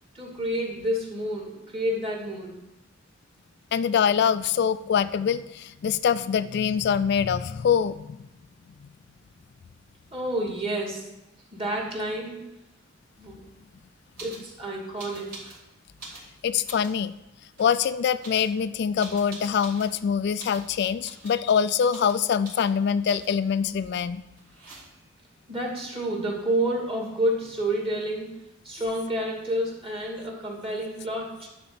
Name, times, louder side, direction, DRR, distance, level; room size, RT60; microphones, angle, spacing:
voice 1, 0.1-2.5 10.1-11.1 11.5-12.4 13.2-13.4 14.2-15.5 25.5-28.3 28.6-31.5, right 1 dB, 30° right, -2 dB, 2.6 m, -29 dB
voice 2, 3.7-8.2 16.4-17.1 17.6-24.2, left 7 dB, 60° left, 13 dB, 0.3 m, -24 dB
sound 1, 14.2-14.5 15.0-15.6 15.9-17.0 17.5-17.8 18.2-20.0 20.4-20.7 21.0-21.4 21.9-22.2 22.4-22.7 23.1-23.4 24.4-25.1 26.9-27.0 27.2-27.8, right 2 dB, 55° right, 3.5 m, -45 dB
11.0 x 4.3 x 7.1 m, 0.93 s
head